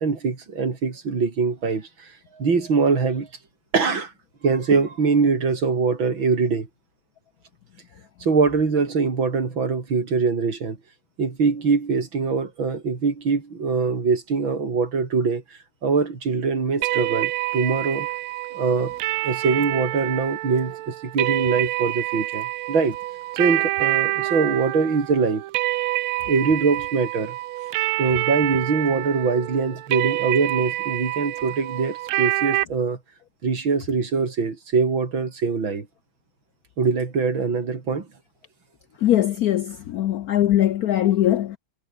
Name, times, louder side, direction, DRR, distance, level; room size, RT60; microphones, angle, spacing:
voice 1, 0.0-2.1 2.3-3.3 3.7-4.1 4.4-6.7 8.2-10.8 11.2-15.4 15.8-18.1 18.5-18.9 19.2-23.0 23.3-25.4 26.3-27.4 28.0-33.0 33.4-35.9 36.8-38.1, right 4 dB, 65° right, 4.2 m, -23 dB
sound 1, 16.8-32.6, right 16 dB, 80° right, 1.5 m, -27 dB
voice 2, 39.0-41.6, left 12 dB, 80° left, 0.8 m, -21 dB
omnidirectional pair, 2.3 m